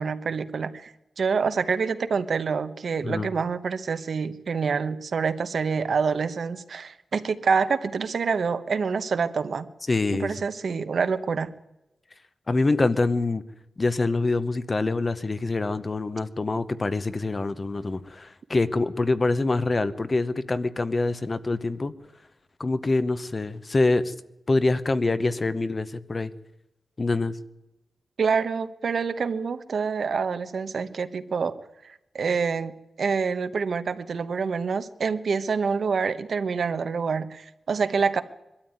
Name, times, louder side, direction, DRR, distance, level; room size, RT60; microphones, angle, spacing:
voice 1, 0.0-9.7 10.1-11.5 28.2-31.6 31.8-38.2, right 5 dB, 60° right, 11 dB, 1.0 m, -27 dB
voice 2, 9.9-10.3 12.5-13.4 13.8-21.9 22.6-24.1 24.5-26.3 27.0-27.4, left 3 dB, 30° left, 13 dB, 0.8 m, -25 dB
22.0 x 13.0 x 9.4 m, 0.95 s
wide cardioid pair, 170°, 0 cm